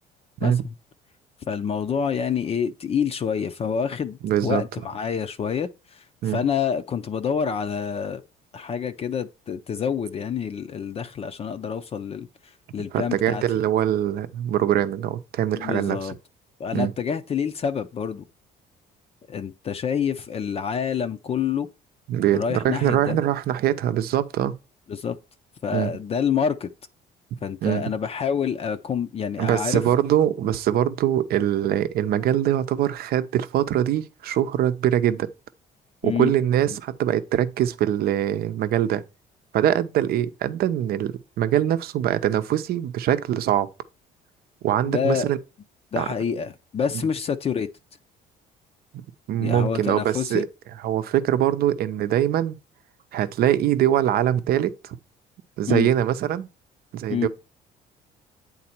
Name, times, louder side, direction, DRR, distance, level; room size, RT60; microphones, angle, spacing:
voice 1, 0.4-0.7 1.5-8.2 8.5-12.3 12.7-13.4 15.5-16.1 16.6-18.2 19.3-21.7 22.3-23.2 24.9-25.2 25.6-26.7 27.4-29.8 36.0-36.3 44.9-45.3 45.9-47.7 49.4-50.5 55.7-55.9 57.1-57.3, left 7 dB, 35° left, 0.5 m, -27 dB
voice 2, 4.2-4.6 6.2-6.4 12.9-16.1 16.7-16.9 22.1-24.5 25.7-25.9 27.6-27.9 29.4-35.3 36.0-39.0 39.5-43.7 44.6-45.4 46.0-46.1 48.9-49.0 49.3-50.5 50.8-52.6 53.1-55.0 55.6-56.5 56.9-57.3, right 11 dB, 65° right, 0.7 m, -23 dB
8.6 x 4.0 x 4.3 m
cardioid pair, 110°, 17 cm